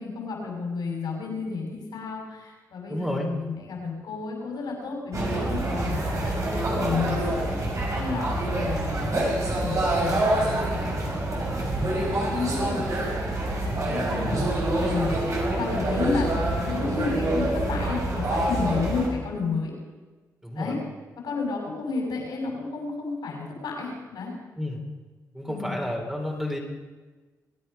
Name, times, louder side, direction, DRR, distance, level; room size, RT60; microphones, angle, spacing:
voice 1, 0.0-7.2 8.0-11.4 11.8-13.1 13.6-14.4 14.8-19.7 20.5-20.8 21.2-24.3 25.4-25.8, left 4 dB, 75° left, -1 dB, 5.9 m, -32 dB
voice 2, 2.9-3.3 8.1-8.3 13.8-14.5 15.1-15.2 20.4-20.8 24.6-24.8 25.3-26.6, left 1 dB, 5° right, 0 dB, 3.6 m, -32 dB
sound 1, 5.1-19.1, right 1 dB, 50° right, 5.1 m, -26 dB
24.0 x 9.2 x 5.5 m, 1.3 s
supercardioid pair, 60°, 7 cm